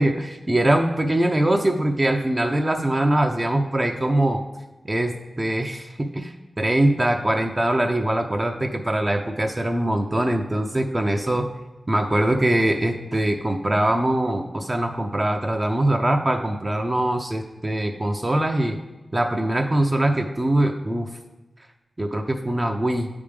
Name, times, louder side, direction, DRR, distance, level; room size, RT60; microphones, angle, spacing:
voice 1, 0.0-4.4 4.8-11.5 11.9-18.8 19.1-21.1 22.0-23.1, right 1 dB, 30° right, 3 dB, 0.5 m, -22 dB
8.6 x 3.4 x 3.4 m, 1.1 s
cardioid pair, 45°, 0 cm